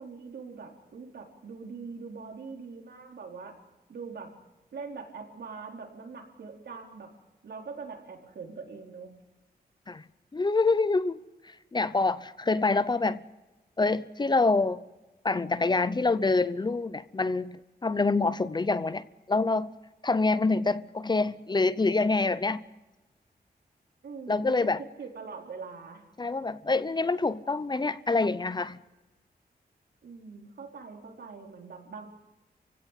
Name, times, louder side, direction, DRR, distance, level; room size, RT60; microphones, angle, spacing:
voice 1, 0.0-3.6 3.9-4.3 4.7-7.1 7.4-9.1 24.0-24.6 25.0-26.0 30.0-32.1, right 5 dB, 90° right, 4.2 m, -42 dB
voice 2, 10.3-11.2 11.4-13.2 13.8-14.8 15.2-19.7 20.0-22.6 24.3-24.8 26.2-28.8, left 3 dB, 25° left, 0.7 m, -26 dB
29.0 x 16.5 x 9.1 m
wide cardioid pair, 145°, 17 cm